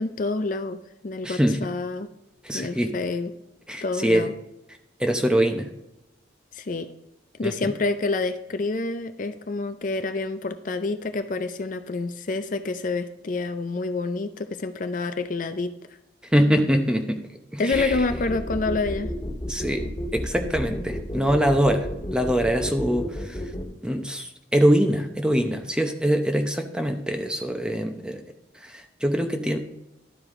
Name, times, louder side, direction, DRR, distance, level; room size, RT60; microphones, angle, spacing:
voice 1, 0.0-2.1 2.5-3.3 3.8-4.3 6.5-6.9 7.4-15.7 17.6-19.1, left 3 dB, 45° left, 9 dB, 0.5 m, -28 dB
voice 2, 1.2-1.6 2.4-2.9 3.7-4.3 5.0-5.7 7.4-7.7 16.3-17.2 17.5-17.9 19.5-19.9 20.1-23.4 23.8-28.2 28.6-29.6, equal, 5° right, 5 dB, 0.7 m, -23 dB
sound 1, 17.7-23.6, equal, 20° left, 1.7 m, -31 dB
12.0 x 5.0 x 3.6 m, 0.91 s
head